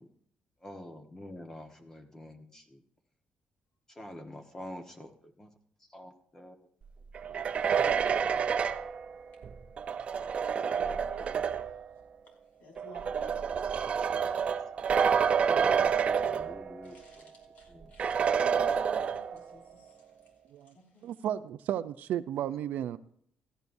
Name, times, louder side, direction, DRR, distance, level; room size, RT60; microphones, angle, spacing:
voice 1, 0.6-2.6 4.0-5.1 5.4-5.5 5.9-6.6 15.3-15.9 16.2-17.3 17.7-17.9, left 1 dB, 20° left, 1.4 m, -46 dB
sound 1, 7.1-11.8 12.8-16.9 17.3-17.4 18.0-19.5, right 7 dB, 45° right, 0.7 m, -29 dB
voice 2, 10.6-11.7 12.3-14.4 14.8-16.3 16.8-20.1 20.6-21.1, equal, 65° left, 5.4 m, -53 dB
voice 3, 21.0-23.0, right 11 dB, 85° right, 0.5 m, -33 dB
17.0 x 14.5 x 2.7 m
cardioid pair, 130°, 3 cm